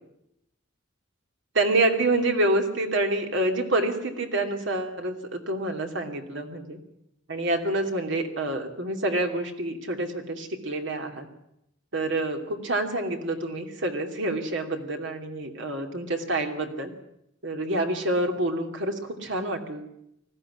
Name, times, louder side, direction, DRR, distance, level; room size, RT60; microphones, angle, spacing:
voice 1, 1.5-6.8 7.3-11.3 11.9-16.9 17.4-19.9, right 2 dB, 65° right, 4 dB, 2.8 m, -27 dB
20.5 x 15.0 x 9.9 m, 0.80 s
head